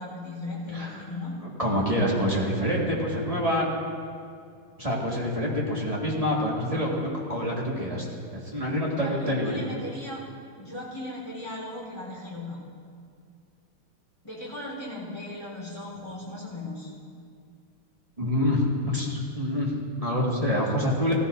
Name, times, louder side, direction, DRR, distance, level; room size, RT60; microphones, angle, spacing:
voice 1, 0.0-1.4 8.9-10.2 10.6-12.6 14.2-16.9, left 1 dB, 15° left, -5 dB, 3.8 m, -37 dB
voice 2, 1.6-3.7 4.8-8.0 8.3-9.6 18.2-21.1, left 1 dB, 20° right, -4 dB, 1.6 m, -26 dB
16.5 x 15.0 x 2.6 m, 2.3 s
omnidirectional pair, 2.3 m